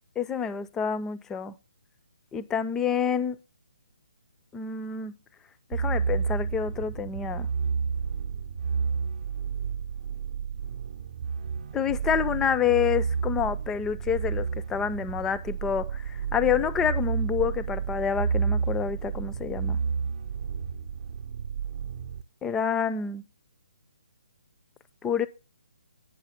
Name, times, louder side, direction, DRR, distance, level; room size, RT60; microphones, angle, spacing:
voice 1, 0.2-1.6 2.3-3.4 4.5-5.2 5.7-7.5 11.7-19.8 22.4-23.2 25.0-25.3, left 7 dB, 10° left, 0.5 m, -28 dB
sound 1, 5.7-22.2, right 6 dB, 50° right, 0.7 m, -30 dB
9.5 x 6.2 x 5.7 m
figure-of-eight pair, 140°, 4 cm